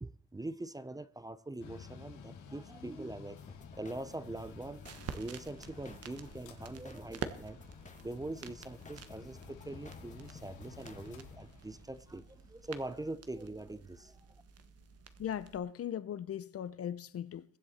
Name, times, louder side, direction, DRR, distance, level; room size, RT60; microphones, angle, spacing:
voice 1, 0.0-3.4 3.8-4.8 5.1-7.6 8.0-14.2, right 2 dB, 10° right, 0.6 m, -43 dB
Mechanical fan, 1.6-14.9, left 6 dB, 90° left, 2.2 m, -53 dB
sound 1, 3.4-11.4, left 3 dB, 25° left, 1.7 m, -55 dB
sound 2, 4.3-15.6, right 7 dB, 55° right, 1.3 m, -49 dB
voice 2, 15.2-17.6, left 9 dB, 50° left, 0.7 m, -39 dB
22.0 x 7.8 x 4.3 m
cardioid pair, 90°, 30 cm